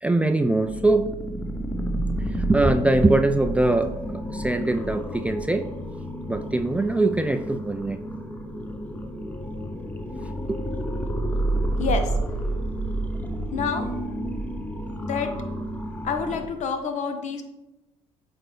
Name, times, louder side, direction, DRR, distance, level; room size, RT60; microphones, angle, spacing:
voice 1, 0.0-1.1 2.5-5.7 6.3-8.0 10.3-10.9, right 2 dB, 10° right, 8 dB, 0.4 m, -22 dB
sound 1, 0.7-16.5, right 1 dB, 10° left, 0.8 m, -30 dB
voice 2, 11.8-12.1 13.5-13.9 15.0-15.3 16.0-17.4, left 5 dB, 55° left, 7 dB, 0.9 m, -27 dB
7.7 x 4.0 x 3.2 m, 0.97 s
supercardioid pair, 75°, 15 cm